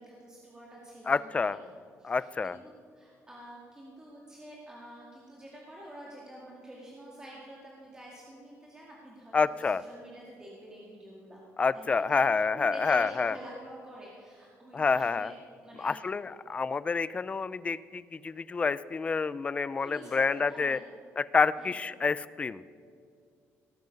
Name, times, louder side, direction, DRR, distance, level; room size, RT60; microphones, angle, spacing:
voice 1, 0.0-1.7 2.0-11.4 11.7-12.2 12.5-15.4 15.6-16.1 19.8-20.8 21.6-21.7, right 1 dB, 15° right, -5 dB, 2.2 m, -48 dB
voice 2, 1.1-1.6 2.0-2.6 9.3-9.8 11.6-13.4 14.7-15.3 15.8-20.8 21.2-22.6, left 4 dB, 25° left, 17 dB, 0.3 m, -28 dB
18.0 x 9.5 x 5.3 m, 2.3 s
cardioid pair, 140°, 5 cm